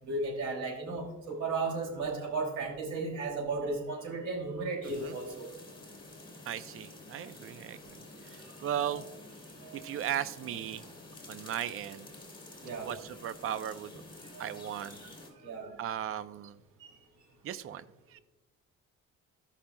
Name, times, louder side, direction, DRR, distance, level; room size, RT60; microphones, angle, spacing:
voice 1, 0.0-5.5 8.4-9.0 9.6-10.0 12.6-13.0 14.3-14.7 15.3-15.7 16.8-16.9, right 3 dB, 75° right, 1 dB, 2.8 m, -35 dB
sound 1, 4.8-15.3, left 2 dB, 15° left, 2.5 m, -50 dB
voice 2, 6.5-7.9 8.3-9.0 9.8-10.8 11.3-12.1 12.8-13.9 14.4-15.0 15.8-16.6 17.4-17.8 18.1-18.2, right 10 dB, 45° right, 13 dB, 0.5 m, -36 dB
14.5 x 5.7 x 2.2 m, 1.0 s
cardioid pair, 90°, 30 cm